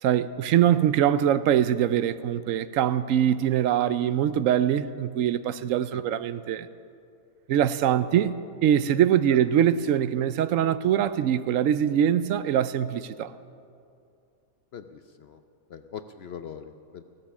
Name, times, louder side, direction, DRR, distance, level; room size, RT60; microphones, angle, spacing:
voice 1, 0.0-6.7 7.5-8.3 8.6-13.3, right 10 dB, 70° right, 0.9 m, -23 dB
voice 2, 14.7-15.4 15.7-17.0, left 8 dB, 60° left, 0.7 m, -42 dB
16.0 x 12.0 x 7.2 m
omnidirectional pair, 1.5 m